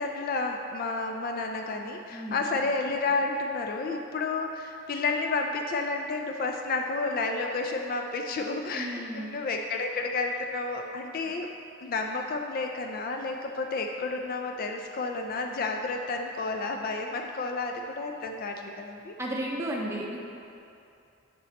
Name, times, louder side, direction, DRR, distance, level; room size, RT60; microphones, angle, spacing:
voice 1, 0.0-11.5 11.8-19.1, left 3 dB, 40° left, 3 dB, 0.3 m, -31 dB
voice 2, 2.1-2.5 8.7-9.4 19.2-20.2, right 1 dB, 10° right, -2 dB, 0.6 m, -33 dB
10.0 x 4.1 x 2.9 m, 2.7 s
head